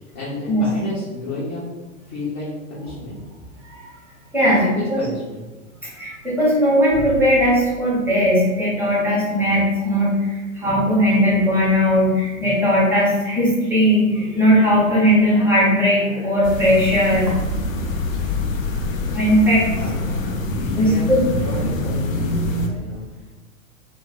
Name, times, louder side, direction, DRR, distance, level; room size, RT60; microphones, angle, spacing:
voice 1, 0.1-1.6 2.1-3.2 4.4-5.5 19.8-21.1 21.4-23.0, left 2 dB, 30° left, -9 dB, 0.7 m, -31 dB
voice 2, 4.3-5.0 6.0-17.3 19.1-19.6 20.7-21.2, equal, 5° right, -7 dB, 0.7 m, -18 dB
sound 1, 16.4-22.7, left 2 dB, 70° left, 0.5 m, -25 dB
2.2 x 2.0 x 3.5 m, 1.2 s
figure-of-eight pair, 110°, 41 cm